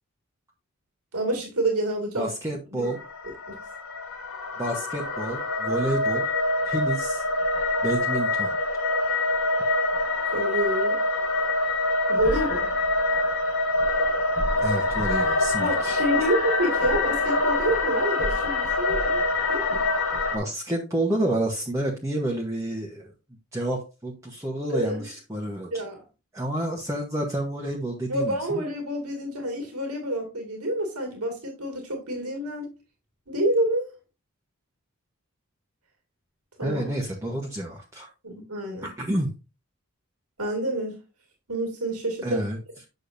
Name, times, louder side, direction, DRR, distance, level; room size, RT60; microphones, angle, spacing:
voice 1, 1.1-2.3 2.7-2.9 3.5-3.6 10.3-11.0 12.1-12.7 15.6-19.2 19.5-19.8 24.7-25.1 25.7-26.0 28.1-32.7 33.3-33.9 36.6-36.9 38.2-38.9 40.4-41.0 41.5-42.4, right 1 dB, 90° right, 2.2 m, -28 dB
voice 2, 2.2-3.0 4.6-6.3 6.6-7.2 7.8-8.5 14.6-16.3 20.3-23.1 23.5-25.7 26.3-28.6 36.6-38.1 38.8-39.3 42.2-42.6, right 1 dB, 15° right, 1.0 m, -29 dB
sound 1, 2.8-20.4, left 2 dB, 70° left, 1.4 m, -25 dB
8.4 x 6.5 x 2.6 m
head